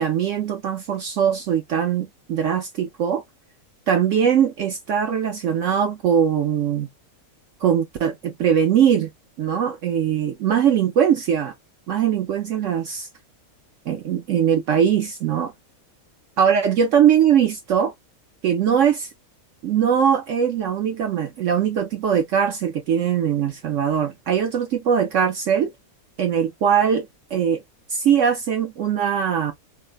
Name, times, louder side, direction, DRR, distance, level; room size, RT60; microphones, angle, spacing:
voice 1, 0.0-3.2 3.9-6.9 7.6-9.1 9.4-11.5 11.9-13.1 13.9-15.5 16.4-17.9 18.4-19.1 19.6-25.7 26.2-27.6 27.9-29.5, right 8 dB, 65° right, 0.9 m, -21 dB
4.7 x 2.1 x 2.3 m
omnidirectional pair, 1.5 m